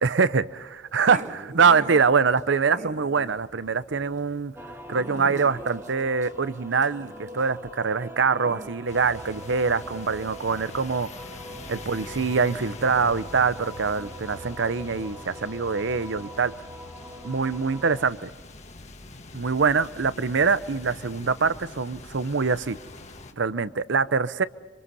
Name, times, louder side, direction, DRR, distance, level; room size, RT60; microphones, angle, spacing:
voice 1, 0.0-0.4 0.9-4.5 4.9-11.1 11.7-16.5 17.2-18.3 19.3-22.8 23.4-24.4, right 5 dB, 70° right, 16 dB, 0.7 m, -24 dB
Growling, 1.1-8.7, right 2 dB, 40° right, 1.4 m, -42 dB
sound 1, 4.6-18.1, equal, 15° right, 2.2 m, -43 dB
sound 2, 8.9-23.3, left 2 dB, 35° left, 1.8 m, -43 dB
26.0 x 25.5 x 5.5 m, 1.3 s
head